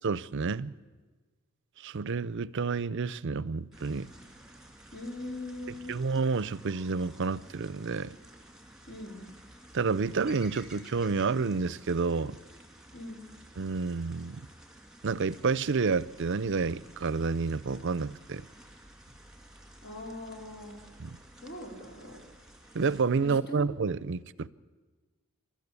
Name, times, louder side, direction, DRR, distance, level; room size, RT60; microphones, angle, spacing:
voice 1, 0.0-0.8 1.8-4.1 5.7-8.2 9.7-12.4 13.6-14.5 15.0-18.4 21.0-21.2 22.7-24.5, right 4 dB, 60° right, 0.6 m, -29 dB
sound 1, 3.7-23.0, right 1 dB, 5° right, 2.3 m, -53 dB
voice 2, 4.9-6.0 8.9-9.2 12.9-13.2 19.8-20.8 21.4-22.2 23.2-24.0, left 1 dB, 50° left, 4.0 m, -41 dB
28.5 x 13.0 x 8.3 m
head